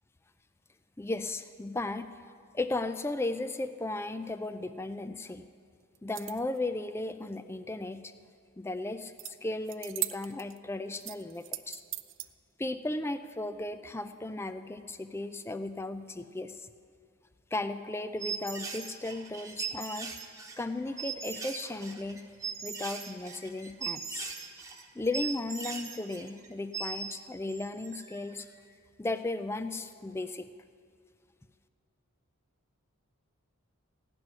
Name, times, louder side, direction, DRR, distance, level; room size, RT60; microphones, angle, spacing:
voice 1, 1.0-2.1 2.5-5.5 6.0-8.1 8.6-11.8 12.6-16.7 17.5-20.1 20.6-22.2 22.6-24.3 24.9-28.5 29.0-30.5, left 2 dB, 10° left, 11 dB, 0.3 m, -35 dB
sound 1, 5.9-6.6 9.2-9.3 9.6-10.6 11.0-12.3, right 16 dB, 55° right, 0.4 m, -38 dB
sound 2, 18.2-27.2 27.5-28.3, right 5 dB, 15° right, 0.9 m, -39 dB
16.0 x 6.1 x 9.6 m, 2.3 s
head